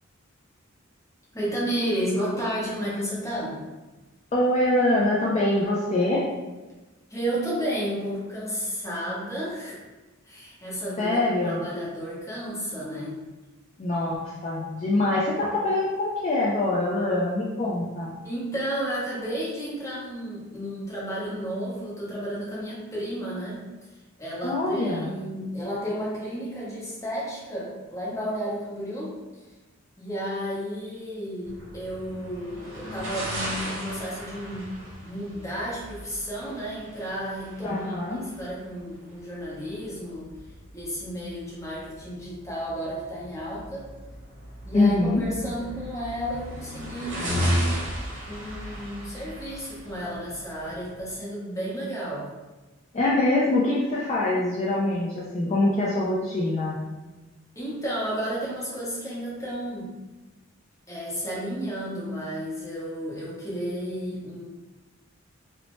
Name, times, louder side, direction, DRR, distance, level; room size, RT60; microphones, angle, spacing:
voice 1, 1.3-3.6 7.1-9.8 10.2-13.2 18.2-23.6 24.2-29.1 30.0-34.7 35.0-40.3 40.7-43.9 44.7-47.7 48.3-52.3 57.6-59.9 60.9-64.5, equal, 15° left, -7 dB, 0.8 m, -32 dB
voice 2, 4.3-6.2 11.0-11.6 13.8-18.1 24.4-25.2 37.6-38.2 44.7-45.2 52.9-56.8, left 2 dB, 35° left, -6 dB, 0.4 m, -24 dB
sound 1, 31.4-51.1, equal, 60° right, 0.7 m, -35 dB
2.7 x 2.1 x 3.0 m, 1.2 s
head